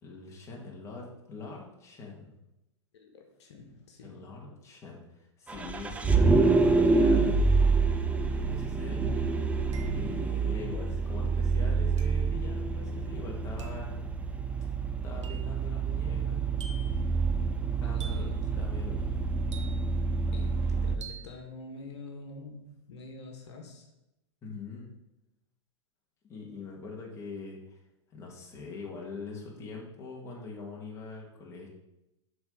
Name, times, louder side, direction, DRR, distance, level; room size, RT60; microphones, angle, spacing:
voice 1, 0.0-2.4 4.0-7.4 8.4-9.0 9.9-14.0 15.0-16.4 17.8-19.2 24.4-24.9 26.3-27.8 28.1-31.7, left 4 dB, 20° left, -2 dB, 1.9 m, -43 dB
voice 2, 2.9-4.3 17.8-18.4 20.3-23.8, left 3 dB, 70° left, 3 dB, 1.4 m, -46 dB
Vehicle, 5.5-21.0, right 4 dB, 10° right, 0.4 m, -27 dB
sound 1, 8.5-8.6 9.7-10.3 12.0-12.3 13.6-13.9 15.2-15.6 16.6-17.0 18.0-18.4 19.5-20.0 21.0-21.3, right 5 dB, 90° right, 1.1 m, -48 dB
6.7 x 4.0 x 5.5 m, 0.91 s
hypercardioid pair, 125°, 15 cm